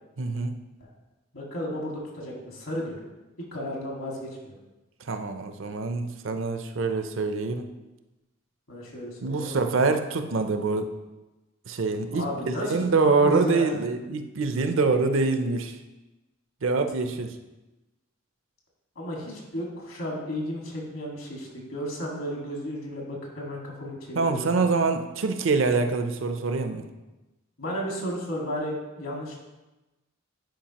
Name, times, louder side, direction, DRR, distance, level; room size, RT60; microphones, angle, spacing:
voice 1, 0.2-0.6 5.1-7.7 9.2-10.9 11.7-15.8 16.6-17.4 24.1-26.9, right 4 dB, 65° right, 7 dB, 0.6 m, -25 dB
voice 2, 1.3-3.0 3.5-4.6 8.7-9.6 12.1-12.7 13.2-13.7 19.0-24.7 27.6-29.4, equal, 70° left, -2 dB, 1.9 m, -33 dB
10.0 x 4.9 x 2.9 m, 1.1 s
head